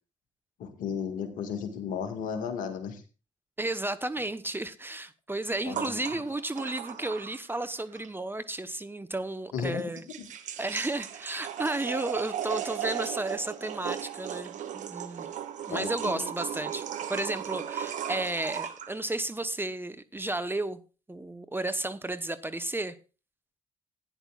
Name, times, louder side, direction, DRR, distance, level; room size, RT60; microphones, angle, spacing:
voice 1, 0.6-3.0 5.6-6.2 9.5-9.8 10.2-10.3 15.7-16.3, left 7 dB, 65° left, 1.8 m, -34 dB
voice 2, 3.6-10.0 10.6-15.3 15.7-20.8 21.1-23.0, right 2 dB, 15° right, 0.9 m, -33 dB
sound 1, 5.7-7.7 8.0-8.1 9.8-18.9, right 9 dB, 60° right, 1.1 m, -36 dB
15.5 x 10.0 x 2.4 m
hypercardioid pair, 45°, 15 cm